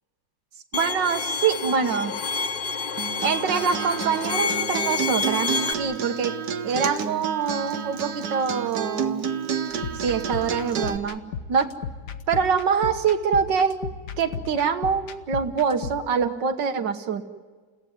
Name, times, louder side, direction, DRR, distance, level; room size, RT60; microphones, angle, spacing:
Bowed string instrument, 0.7-5.7, left 5 dB, 45° left, 0.7 m, -28 dB
voice 1, 0.7-2.1 3.2-6.3 6.6-9.3 9.9-11.2 11.5-11.7 12.3-13.8 14.2-17.2, right 6 dB, 85° right, 7 dB, 1.9 m, -24 dB
Acoustic guitar, 3.0-11.0, right 7 dB, 65° right, 1.6 m, -30 dB
sound 1, 9.7-16.0, left 6 dB, 70° left, 1.7 m, -36 dB
30.0 x 17.0 x 9.3 m, 1.4 s
omnidirectional pair, 1.9 m